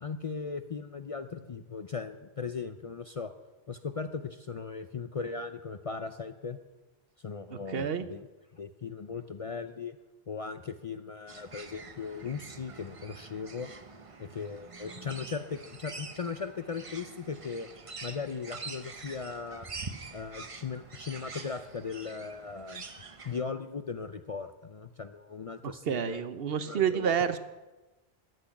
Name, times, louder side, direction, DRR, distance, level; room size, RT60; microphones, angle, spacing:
voice 1, 0.0-3.3 3.7-6.6 7.2-8.3 8.5-10.0 10.3-13.7 14.2-17.7 18.0-19.7 20.1-22.9 23.2-26.2 26.6-27.3, left 5 dB, 45° left, 9 dB, 0.5 m, -38 dB
voice 2, 7.7-8.1 25.6-27.4, right 8 dB, 70° right, 12 dB, 1.0 m, -29 dB
sound 1, 11.3-23.4, right 4 dB, 35° right, 0.9 m, -46 dB
14.0 x 6.1 x 9.8 m, 1.1 s
omnidirectional pair, 1.0 m